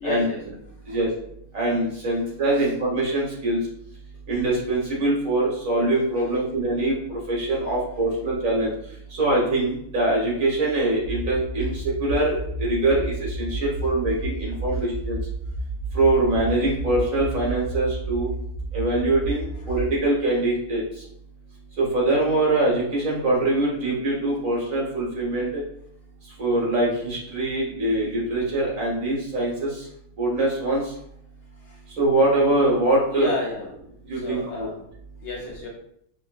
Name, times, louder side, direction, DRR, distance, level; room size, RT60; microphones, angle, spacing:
voice 1, 0.0-0.4 0.9-1.0 2.6-2.7 6.2-6.3 31.6-31.8 33.1-33.7 34.2-34.8 35.2-35.7, left 3 dB, 65° left, -1 dB, 0.8 m, -31 dB
voice 2, 1.5-3.6 4.3-6.9 7.3-8.7 9.2-11.7 12.0-12.3 12.6-15.2 15.9-18.3 18.7-20.8 21.8-25.5 26.4-29.7 30.2-30.8 32.0-33.3 34.1-34.7, right 2 dB, 65° right, -4 dB, 1.7 m, -23 dB
sound 1, 11.0-19.9, right 2 dB, 35° right, 0.7 m, -31 dB
5.1 x 2.3 x 2.4 m, 0.72 s
omnidirectional pair, 1.5 m